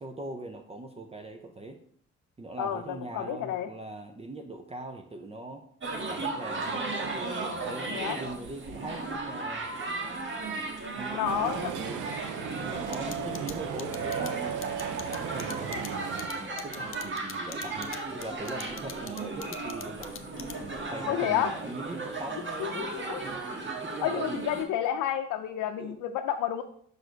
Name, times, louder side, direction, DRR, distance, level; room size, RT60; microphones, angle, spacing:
voice 1, 0.0-1.8 2.4-5.6 6.1-9.7 10.9-12.1 12.6-14.6 15.2-20.2 20.6-22.9 23.5-24.4 25.8-26.0, right 2 dB, 20° right, 5 dB, 0.7 m, -41 dB
voice 2, 2.6-3.7 7.9-8.2 11.1-11.7 13.1-13.5 21.1-21.5 22.6-23.2 24.0-26.6, left 10 dB, 85° left, 5 dB, 0.6 m, -30 dB
sound 1, 5.8-24.6, right 3 dB, 40° right, 1.6 m, -36 dB
sound 2, 11.3-16.3, right 8 dB, 85° right, 0.6 m, -36 dB
sound 3, 12.9-20.8, left 8 dB, 45° left, 0.8 m, -42 dB
6.5 x 4.9 x 4.5 m, 0.63 s
cardioid pair, 90°, 30 cm